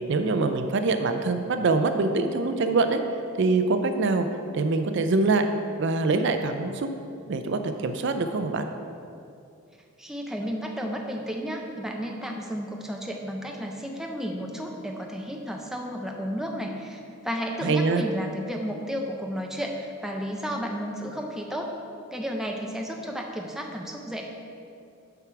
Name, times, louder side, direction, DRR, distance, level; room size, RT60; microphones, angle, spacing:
voice 1, 0.1-3.0 3.4-4.3 4.5-5.4 5.8-6.9 7.2-8.7 17.6-18.0, right 3 dB, 55° right, 7 dB, 0.4 m, -24 dB
voice 2, 10.0-21.7 22.1-24.2, equal, ahead, 1 dB, 0.5 m, -32 dB
7.1 x 4.6 x 5.7 m, 2.5 s
head